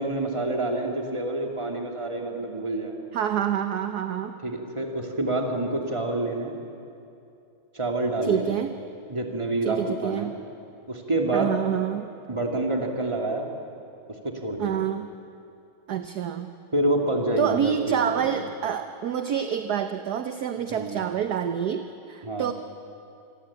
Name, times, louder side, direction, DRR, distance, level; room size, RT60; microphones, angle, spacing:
voice 1, 0.0-3.0 4.4-6.5 7.7-8.6 9.1-10.3 10.9-11.5 12.3-13.5 14.2-14.8 16.7-18.4 20.7-21.0 22.2-22.5, right 2 dB, 15° right, 1 dB, 2.8 m, -27 dB
voice 2, 3.1-4.3 8.2-8.7 9.6-10.4 11.3-12.1 14.6-15.1 15.9-16.5 17.4-22.5, right 9 dB, 60° right, 8 dB, 1.3 m, -27 dB
27.5 x 22.5 x 8.9 m, 2.6 s
omnidirectional pair, 2.2 m